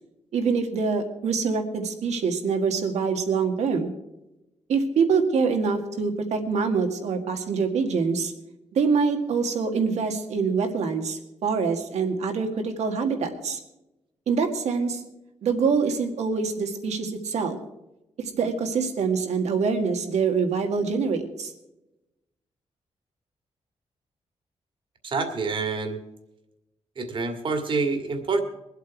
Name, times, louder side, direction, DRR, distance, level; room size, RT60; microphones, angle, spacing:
voice 1, 0.3-3.9 4.7-8.3 8.7-13.6 14.3-15.0 15.4-17.6 18.2-21.5, right 5 dB, 80° right, 6 dB, 1.9 m, -25 dB
voice 2, 25.0-26.0 27.0-28.4, right 4 dB, 50° right, 5 dB, 2.0 m, -27 dB
22.5 x 8.1 x 4.6 m, 0.94 s
wide cardioid pair, 135°, 11 cm